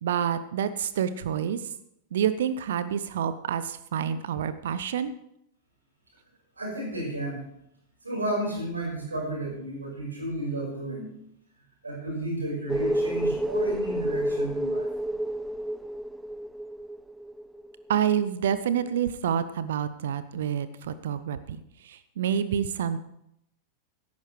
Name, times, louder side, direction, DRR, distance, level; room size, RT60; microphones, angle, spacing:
voice 1, 0.0-1.6 2.1-5.1 17.9-23.0, right 9 dB, 60° right, 14 dB, 0.7 m, -28 dB
voice 2, 6.6-7.4 8.0-11.1 11.8-14.9, right 1 dB, 80° right, -1 dB, 5.2 m, -32 dB
wind suspense build, 12.7-17.9 18.2-18.3, right 1 dB, 5° right, 0.4 m, -30 dB
16.5 x 13.5 x 3.3 m, 0.77 s
figure-of-eight pair, 90°, 0 cm